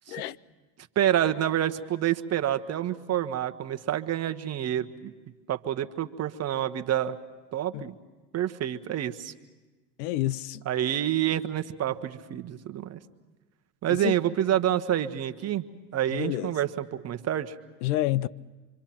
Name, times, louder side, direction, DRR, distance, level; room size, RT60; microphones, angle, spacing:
voice 1, 1.0-5.1 5.5-7.2 7.5-7.9 8.3-9.3 10.6-13.0 13.8-15.6 15.9-17.5, right 11 dB, 30° right, 1.0 m, -28 dB
voice 2, 10.0-10.6 13.9-14.2 16.1-16.5 17.8-18.3, left 15 dB, 65° left, 0.6 m, -28 dB
26.5 x 24.5 x 6.0 m
hypercardioid pair, 95°, 50 cm